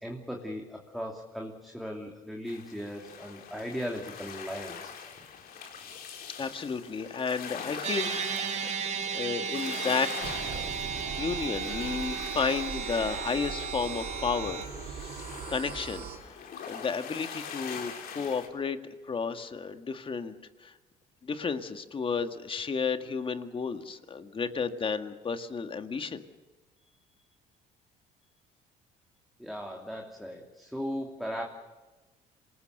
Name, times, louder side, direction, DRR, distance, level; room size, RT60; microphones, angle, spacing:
voice 1, 0.0-5.0 17.7-18.2 29.4-31.4, equal, ahead, 0 dB, 2.9 m, -38 dB
sound 1, 2.5-18.5, left 7 dB, 65° left, 4.2 m, -43 dB
voice 2, 6.4-8.4 9.1-10.6 11.2-14.6 14.9-15.1 15.5-16.1 16.6-18.8 19.1-20.3 20.6-20.7 21.2-26.2, left 5 dB, 30° left, 8 dB, 1.9 m, -32 dB
sound 2, 7.8-14.6, right 7 dB, 40° right, 2.4 m, -35 dB
sound 3, 10.2-16.2, right 7 dB, 70° right, 5.1 m, -40 dB
27.0 x 19.5 x 6.8 m, 1.2 s
cardioid pair, 110°, 17 cm